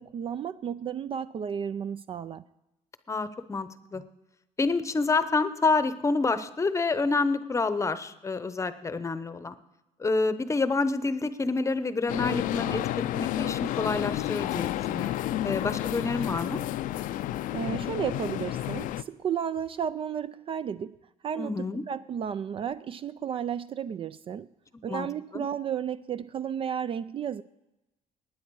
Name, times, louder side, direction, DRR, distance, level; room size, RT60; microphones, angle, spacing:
voice 1, 0.0-2.4 3.9-4.0 17.5-21.0 21.2-24.5 24.8-27.4, right 8 dB, 40° right, 0.4 m, -33 dB
voice 2, 3.1-4.0 4.6-9.5 10.0-12.8 13.1-16.6 21.4-21.8 24.9-25.1 25.3-25.4, left 3 dB, 20° left, 0.8 m, -28 dB
sound 1, 12.1-19.0, left 13 dB, 70° left, 0.4 m, -31 dB
20.0 x 9.3 x 4.7 m
cardioid pair, 110°, 14 cm